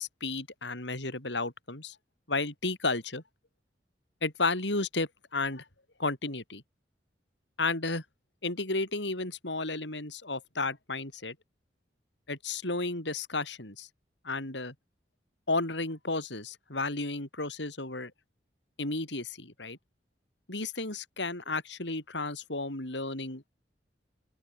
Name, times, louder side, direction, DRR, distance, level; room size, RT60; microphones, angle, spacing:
voice 1, 0.0-2.0 2.3-3.2 4.2-5.6 6.0-6.6 7.6-8.0 8.4-11.4 12.3-13.9 14.2-14.7 15.5-18.1 18.8-19.8 20.5-23.6, left 3 dB, 85° left, 5.9 m, -33 dB
open air
head